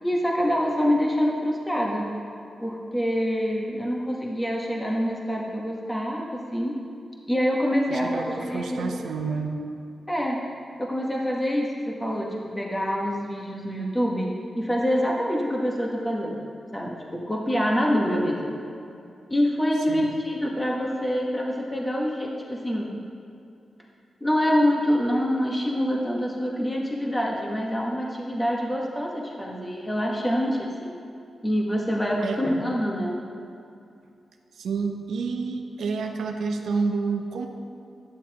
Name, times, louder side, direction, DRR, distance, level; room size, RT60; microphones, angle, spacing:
voice 1, 0.0-2.1 2.6-6.8 7.3-9.1 10.1-10.4 10.8-16.4 16.7-18.6 19.3-23.0 24.2-31.0 31.4-33.2, equal, 15° left, -2 dB, 1.2 m, -26 dB
voice 2, 7.9-9.5 19.9-20.1 32.2-32.4 34.5-37.5, right 4 dB, 90° right, 3 dB, 0.7 m, -29 dB
11.5 x 9.6 x 2.9 m, 2.6 s
cardioid pair, 75°, 0 cm